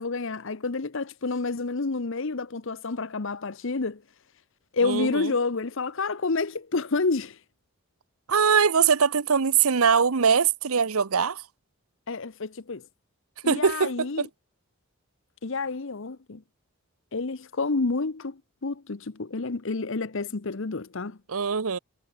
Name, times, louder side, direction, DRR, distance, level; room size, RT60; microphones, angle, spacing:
voice 1, 0.0-4.0 4.7-7.4 12.1-12.9 13.4-14.3 15.4-16.4 17.1-21.2, left 3 dB, 60° left, 0.9 m, -29 dB
voice 2, 4.8-5.3 8.3-11.4 13.5-14.3 21.3-21.8, right 6 dB, 80° right, 0.8 m, -22 dB
head